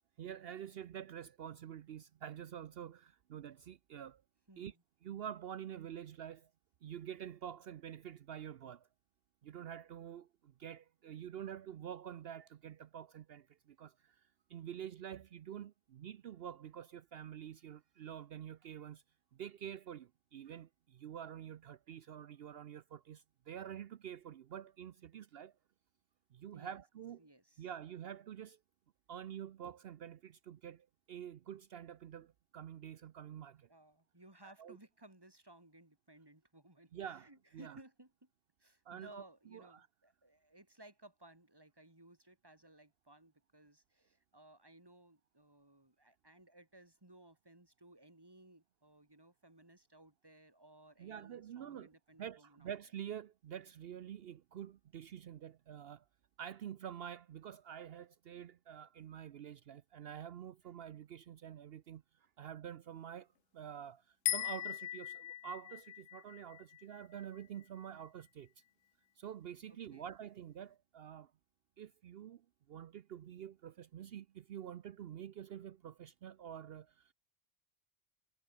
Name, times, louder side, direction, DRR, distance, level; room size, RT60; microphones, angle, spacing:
voice 1, 0.2-4.2 4.6-4.7 5.0-6.5 6.8-8.9 9.4-19.0 19.3-25.5 26.3-27.2 27.6-28.6 29.1-33.7 34.4-34.8 36.9-37.8 38.9-39.2 39.5-39.9 51.0-51.9 52.2-56.0 56.4-68.5 69.2-71.3 71.8-77.1, right 9 dB, 65° right, 0.8 m, -48 dB
voice 2, 4.5-4.8 26.5-26.8 27.2-27.7 33.7-38.3 38.6-52.7 69.7-70.1, right 1 dB, 20° right, 3.1 m, -60 dB
sound 1, 64.3-67.6, left 12 dB, 90° left, 0.9 m, -40 dB
omnidirectional pair, 1.1 m